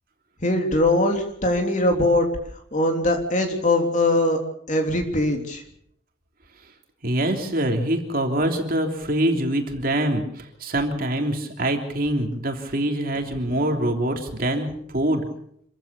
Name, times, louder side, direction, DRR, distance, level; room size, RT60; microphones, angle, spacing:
voice 1, 0.4-2.3 2.7-4.4 4.7-5.6, left 1 dB, 40° left, 4 dB, 3.4 m, -21 dB
voice 2, 7.0-15.3, right 1 dB, 50° right, 3 dB, 3.2 m, -24 dB
27.0 x 15.0 x 7.0 m, 0.69 s
head